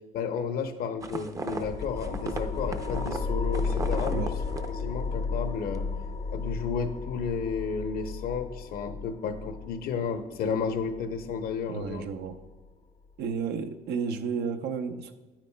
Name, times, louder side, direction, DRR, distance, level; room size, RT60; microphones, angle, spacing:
voice 1, 0.1-4.2 4.7-5.9 6.3-12.1, left 6 dB, 60° left, 8 dB, 0.7 m, -32 dB
sound 1, 1.0-5.4 5.6-6.2, right 3 dB, 20° right, 0.5 m, -37 dB
sound 2, 1.6-12.7, left 4 dB, 30° left, 0.5 m, -34 dB
voice 2, 11.7-12.4 13.2-15.1, right 6 dB, 75° right, 8 dB, 0.6 m, -32 dB
9.1 x 8.8 x 2.2 m, 1.2 s
cardioid pair, 110°, 17 cm